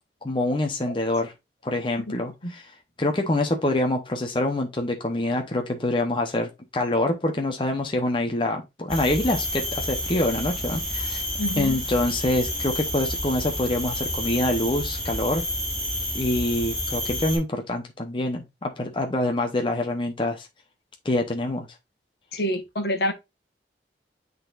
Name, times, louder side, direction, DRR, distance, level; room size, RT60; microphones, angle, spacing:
voice 1, 0.2-1.3 1.6-2.7 3.0-11.2 11.6-15.4 16.1-20.5 21.0-21.7, left 1 dB, 30° left, 0.9 m, -25 dB
sound 1, 8.9-17.4, equal, 5° left, 4.6 m, -30 dB
voice 2, 11.4-11.8 22.3-23.1, equal, 60° left, 1.2 m, -27 dB
9.5 x 4.0 x 2.5 m
head